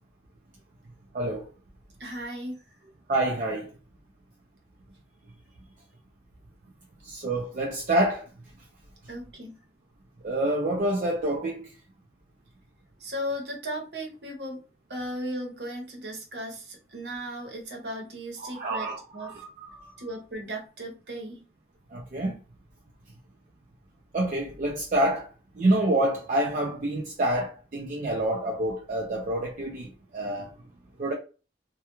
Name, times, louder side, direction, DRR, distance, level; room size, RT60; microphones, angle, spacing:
voice 1, 1.1-1.5 3.1-3.7 7.0-8.3 10.2-11.7 18.4-19.9 21.9-22.4 24.1-25.3 25.6-30.5 31.0-31.1, right 1 dB, 45° right, 0.4 m, -27 dB
voice 2, 2.0-2.6 9.1-9.6 13.0-14.6 14.9-19.4 20.0-21.4, equal, 70° right, 0.9 m, -36 dB
2.2 x 2.2 x 2.9 m
head